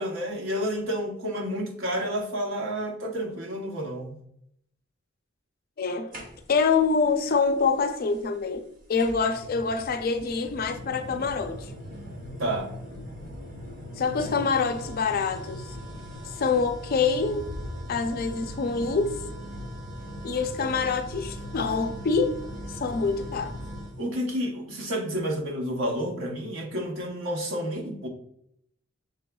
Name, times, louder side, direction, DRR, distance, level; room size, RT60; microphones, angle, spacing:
voice 1, 0.0-4.1 12.4-12.7 24.0-28.1, equal, 75° right, 0.9 m, -30 dB
voice 2, 5.8-6.2 6.5-8.6 8.9-11.7 14.0-15.8 16.4-17.4 17.9-19.1 20.2-22.4 22.7-23.6, left 4 dB, 50° left, 0.5 m, -26 dB
sound 1, 6.1-6.8 8.1-8.2 9.0-24.0, equal, 45° right, 1.0 m, -39 dB
6.1 x 3.4 x 2.2 m
head